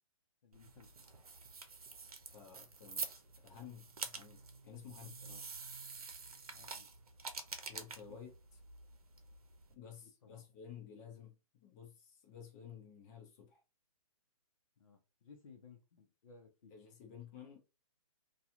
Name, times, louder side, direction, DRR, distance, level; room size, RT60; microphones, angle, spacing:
voice 1, 0.4-0.9 6.5-6.9 8.1-8.2 10.2-10.4 14.8-16.7, left 5 dB, 65° left, 0.7 m, -59 dB
sound 1, 0.5-9.7, right 5 dB, 85° right, 0.7 m, -48 dB
voice 2, 2.3-5.5 7.7-8.3 9.7-13.6 16.7-17.6, left 8 dB, 30° left, 0.7 m, -53 dB
2.4 x 2.3 x 2.8 m
hypercardioid pair, 150°, 18 cm